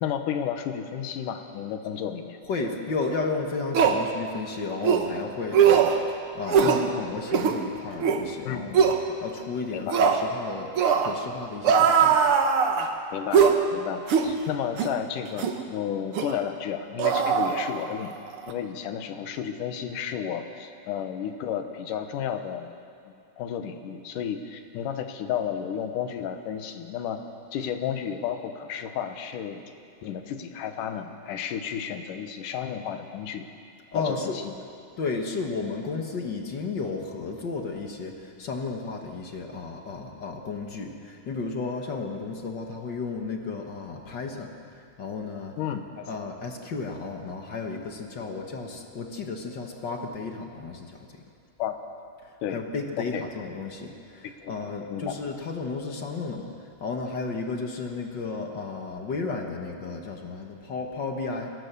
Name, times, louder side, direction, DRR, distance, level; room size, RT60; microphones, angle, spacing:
voice 1, 0.0-2.4 8.4-8.6 9.7-10.0 13.1-18.2 18.5-22.7 23.1-27.2 27.5-29.6 30.0-33.5 33.9-34.5 45.6-46.1 51.6-51.8 52.4-52.6 53.0-53.2 54.4-54.5 54.9-55.1, left 8 dB, 80° left, 7 dB, 2.6 m, -32 dB
voice 2, 2.4-12.2 33.9-34.6 35.0-45.6 46.1-51.2 52.2-61.5, left 4 dB, 50° left, 3 dB, 1.4 m, -33 dB
sound 1, 3.0-3.1 3.7-4.0 4.8-5.1 5.5-6.0 6.5-6.8 7.3-7.6 8.0-8.2 8.7-9.0 9.9-10.2 10.8-11.1 11.6-12.9 13.3-13.6 14.1-14.3 14.8-14.9 15.4-15.6 16.2-16.3 17.0-18.1 18.3-18.5, right 7 dB, 60° right, 1.6 m, -20 dB
23.5 x 17.0 x 6.9 m, 2.4 s
omnidirectional pair, 3.8 m